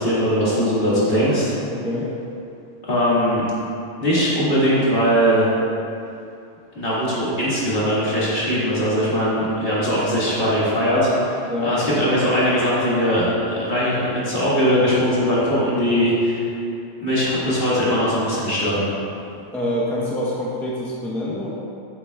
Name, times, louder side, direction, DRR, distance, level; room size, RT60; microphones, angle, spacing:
voice 1, 0.0-1.5 2.9-3.4 4.0-5.5 6.7-16.5 17.0-18.8, equal, 45° left, -9 dB, 2.1 m, -20 dB
voice 2, 1.6-2.1 11.5-11.7 19.5-21.5, left 1 dB, ahead, -7 dB, 0.8 m, -26 dB
8.2 x 7.6 x 2.4 m, 2.6 s
omnidirectional pair, 1.3 m